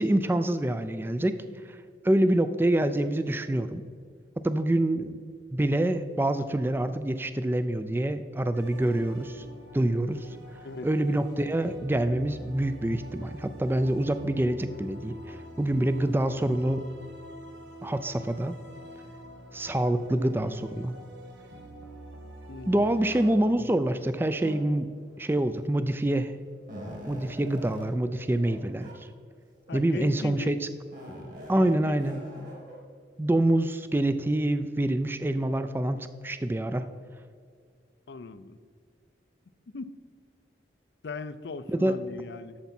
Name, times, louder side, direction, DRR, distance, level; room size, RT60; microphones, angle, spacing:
voice 1, 0.0-1.4 1.7-3.8 4.4-5.2 5.5-9.4 9.7-10.4 10.8-16.9 17.8-18.5 19.5-21.0 22.7-24.9 25.2-26.3 27.1-29.1 29.7-30.6 31.5-32.2 33.2-36.9 41.7-41.9, right 1 dB, 10° right, 11 dB, 0.3 m, -26 dB
sound 1, 8.5-23.3, right 1 dB, 90° right, 1.3 m, -46 dB
voice 2, 22.5-22.9 29.7-30.6 31.5-31.9 38.1-38.6 39.7-39.9 41.0-42.6, left 3 dB, 80° left, 13 dB, 0.5 m, -38 dB
sound 2, 23.0-23.3 24.4-24.9 25.9-26.0 26.3-27.9 28.4-28.6 28.8-28.9 29.6-30.1 30.9-32.8, equal, 45° right, 2.1 m, -43 dB
11.5 x 7.1 x 4.3 m, 2.1 s
head